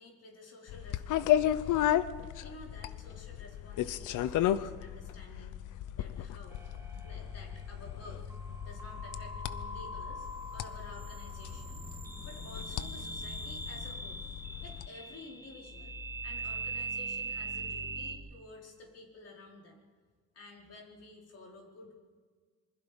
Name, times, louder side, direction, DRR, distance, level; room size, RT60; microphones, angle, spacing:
voice 1, 0.0-1.9 2.4-5.6 5.9-6.6 7.0-8.3 8.6-11.8 12.2-14.2 14.6-19.8 20.3-21.9, left 2 dB, 55° left, -1 dB, 4.8 m, -52 dB
sound 1, 0.7-14.9, left 12 dB, 85° left, 0.8 m, -34 dB
sound 2, 6.5-18.2, right 2 dB, 10° right, 2.4 m, -41 dB
27.0 x 21.5 x 5.3 m, 1.5 s
cardioid pair, 90°, 30 cm